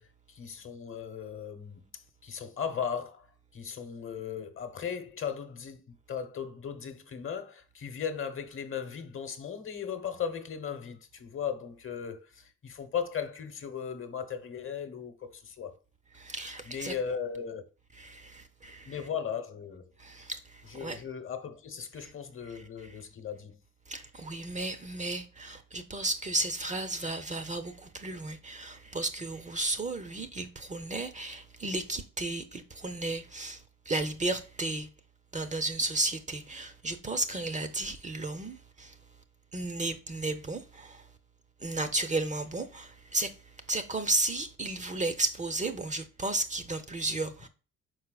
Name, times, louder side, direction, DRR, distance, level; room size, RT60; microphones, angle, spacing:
voice 1, 0.0-1.8 2.2-3.3 3.5-15.7 16.6-17.7 18.8-19.9 20.7-23.6, left 7 dB, 45° left, 1.0 m, -37 dB
voice 2, 16.2-16.9 18.0-18.9 20.0-21.0 23.9-33.6 33.9-34.9 35.3-38.9 39.5-41.0 41.6-43.3 43.7-47.5, right 2 dB, 25° right, 0.6 m, -33 dB
4.7 x 4.3 x 2.3 m
cardioid pair, 90°, 30 cm